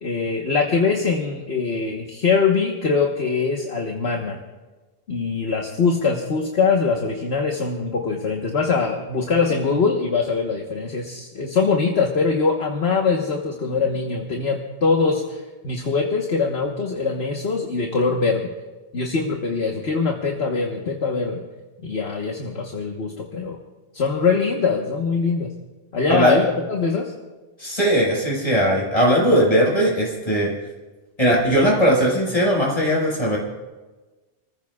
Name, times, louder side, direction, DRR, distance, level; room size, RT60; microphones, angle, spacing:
voice 1, 0.0-4.4 5.1-18.5 18.9-21.4 21.8-23.6 23.9-25.5 25.9-27.1, left 4 dB, 60° left, 1 dB, 1.5 m, -22 dB
voice 2, 27.6-30.5 31.2-33.4, equal, 30° left, -4 dB, 5.4 m, -19 dB
29.5 x 15.0 x 2.4 m, 1.2 s
omnidirectional pair, 1.2 m